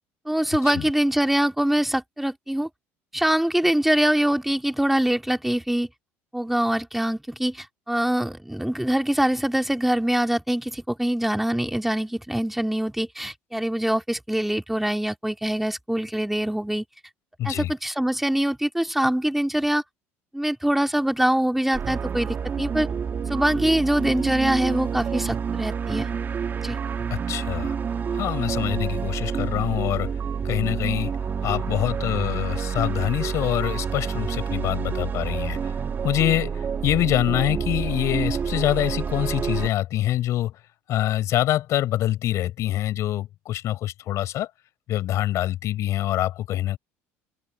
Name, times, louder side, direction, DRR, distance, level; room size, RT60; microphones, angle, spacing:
voice 1, 0.2-2.7 3.1-5.9 6.3-16.8 17.4-19.8 20.3-22.9 23.3-26.1 26.6-26.8, right 1 dB, 5° right, 3.0 m, -24 dB
voice 2, 17.4-17.7 27.1-27.7 28.1-30.1 30.4-31.1 31.4-35.7 36.0-40.6 40.9-44.5 44.9-46.8, left 13 dB, 60° left, 5.3 m, -25 dB
sound 1, 21.7-39.7, right 6 dB, 35° right, 2.3 m, -28 dB
supercardioid pair, 95°, 6 cm